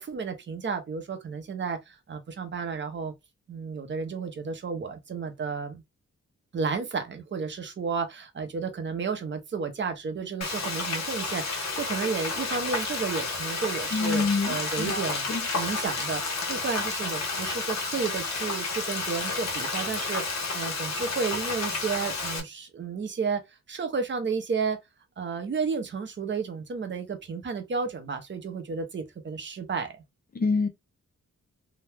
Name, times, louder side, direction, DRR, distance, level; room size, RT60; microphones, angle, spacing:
voice 1, 0.0-3.1 3.5-5.8 6.5-15.3 15.5-16.2 16.5-23.4 23.7-24.8 25.2-30.0, right 5 dB, 40° right, 0.6 m, -32 dB
Frying (food), 10.4-22.4, left 3 dB, 65° left, 0.9 m, -31 dB
voice 2, 13.9-15.5 30.3-30.7, left 4 dB, 30° left, 0.5 m, -27 dB
2.8 x 2.2 x 3.3 m
wide cardioid pair, 175°, 29 cm